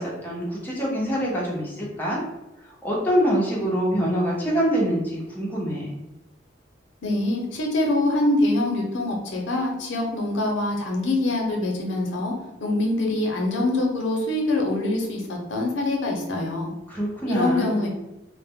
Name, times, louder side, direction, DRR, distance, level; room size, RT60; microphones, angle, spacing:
voice 1, 0.0-2.2 2.8-5.9 16.9-17.9, equal, 10° left, -4 dB, 0.6 m, -25 dB
voice 2, 7.0-12.3 12.6-16.7 17.3-17.9, left 2 dB, 90° left, 0 dB, 0.6 m, -24 dB
2.1 x 2.0 x 3.4 m, 0.97 s
head